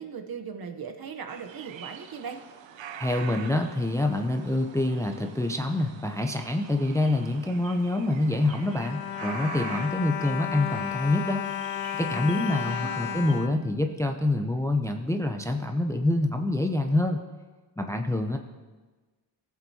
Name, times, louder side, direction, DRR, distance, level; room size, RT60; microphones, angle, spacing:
voice 1, 0.0-2.4 12.1-13.2, right 6 dB, 55° right, 5 dB, 0.9 m, -38 dB
sound 1, 1.3-13.3, right 8 dB, 85° right, 0.7 m, -45 dB
voice 2, 3.0-11.4 11.9-17.2 17.8-18.4, left 2 dB, 5° left, 4 dB, 0.5 m, -26 dB
Bowed string instrument, 8.2-14.5 15.2-15.3 15.6-15.7, left 10 dB, 55° left, 0.5 m, -34 dB
16.0 x 7.2 x 2.8 m, 1.3 s
wide cardioid pair, 120°, 44 cm